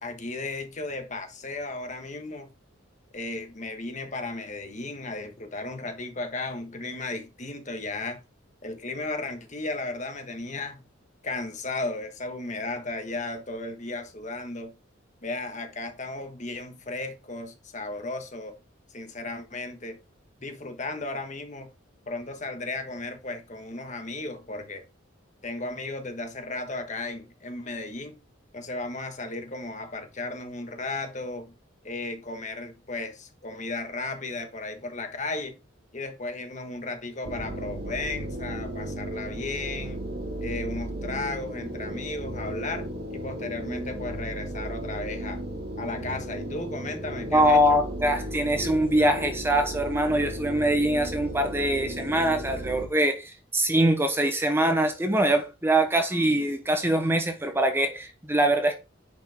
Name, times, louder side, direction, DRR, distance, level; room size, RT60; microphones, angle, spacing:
voice 1, 0.0-2.5 3.1-8.2 8.6-10.9 11.2-14.7 15.2-18.6 18.9-20.0 20.4-21.7 22.1-24.8 25.4-28.1 28.5-31.5 31.8-35.5 35.9-40.0 40.4-45.4 45.8-47.8, left 2 dB, 40° left, 1.5 m, -35 dB
sound 1, 37.2-52.9, right 1 dB, 50° right, 2.0 m, -35 dB
voice 2, 47.3-58.8, right 1 dB, 10° right, 0.9 m, -23 dB
9.9 x 5.3 x 3.6 m
head